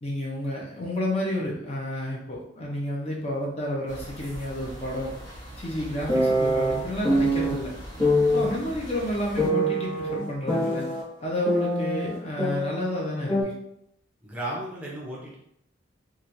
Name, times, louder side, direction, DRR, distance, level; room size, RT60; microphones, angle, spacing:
voice 1, 0.0-5.1 5.6-7.7 8.3-10.8 11.2-13.5, left 1 dB, 35° left, -3 dB, 0.7 m, -30 dB
sound 1, 3.9-9.5, equal, 80° left, 1.1 m, -41 dB
sound 2, 6.1-7.5 8.0-8.5 9.4-11.0 11.5-13.0 13.3-13.4, equal, 15° left, 1.3 m, -24 dB
voice 2, 14.2-15.4, right 1 dB, 5° right, -5 dB, 0.6 m, -34 dB
3.3 x 2.5 x 2.9 m, 0.74 s
head